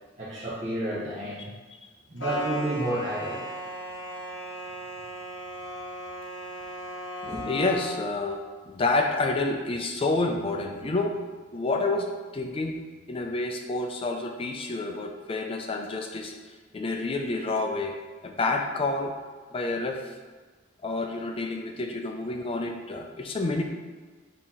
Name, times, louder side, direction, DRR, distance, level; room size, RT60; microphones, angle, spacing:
voice 1, 0.2-1.5 2.1-3.4 7.2-7.4, right 1 dB, 35° right, -10 dB, 0.8 m, -30 dB
sound 1, 2.2-8.2, equal, 65° left, 0.7 m, -37 dB
voice 2, 7.5-8.4 8.7-11.2 11.5-12.1 12.3-12.8 13.1-16.3 16.7-18.0 18.2-19.1 19.5-20.0 20.8-23.6, left 2 dB, 30° left, 3 dB, 0.3 m, -28 dB
4.3 x 2.8 x 3.7 m, 1.4 s
head